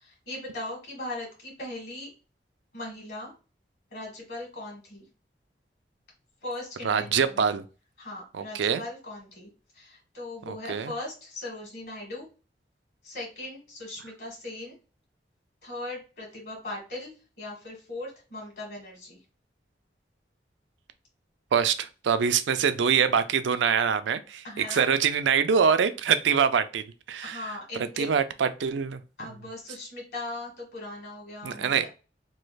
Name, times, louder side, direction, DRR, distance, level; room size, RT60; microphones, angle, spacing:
voice 1, 0.0-2.1 2.7-3.3 3.9-5.1 6.4-7.4 8.0-9.5 9.7-12.3 13.0-14.8 15.6-19.2 24.4-24.9 27.2-28.1 29.2-31.9, left 2 dB, 65° left, -2 dB, 1.6 m, -39 dB
voice 2, 6.8-7.6 8.3-8.8 10.5-10.9 21.5-27.6 28.0-29.0 31.4-31.9, right 7 dB, 90° right, 11 dB, 0.4 m, -24 dB
3.1 x 2.3 x 3.2 m, 0.33 s
head